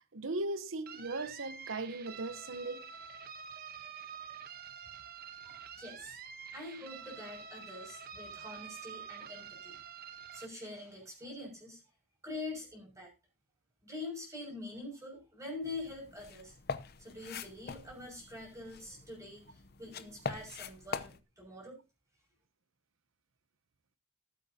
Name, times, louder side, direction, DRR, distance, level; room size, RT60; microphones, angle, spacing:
voice 1, 0.0-2.9, right 2 dB, 65° right, 0.9 m, -38 dB
sound 1, 0.9-10.5, right 7 dB, 45° right, 1.0 m, -48 dB
voice 2, 5.4-6.2 6.5-9.7 10.3-11.8 12.2-13.1 13.8-16.5 17.0-21.8, left 2 dB, 15° right, 6.3 m, -45 dB
sound 2, 15.6-21.2, left 5 dB, 50° left, 0.7 m, -43 dB
19.5 x 8.6 x 2.8 m
head